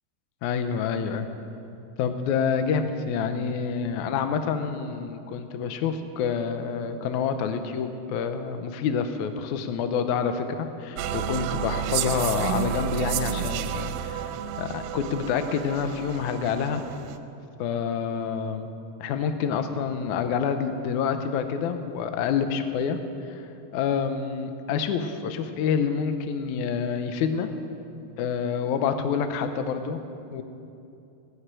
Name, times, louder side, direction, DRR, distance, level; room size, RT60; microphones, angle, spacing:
voice 1, 0.4-1.3 2.0-14.3 14.6-16.8 17.6-18.7 19.0-23.0 23.3-23.4 23.7-27.5 28.2-30.0 30.3-30.4, left 6 dB, 90° left, 8 dB, 1.7 m, -27 dB
sound 1, 11.0-17.2, right 9 dB, 80° right, 2.4 m, -31 dB
19.0 x 6.6 x 9.0 m, 2.7 s
omnidirectional pair, 4.6 m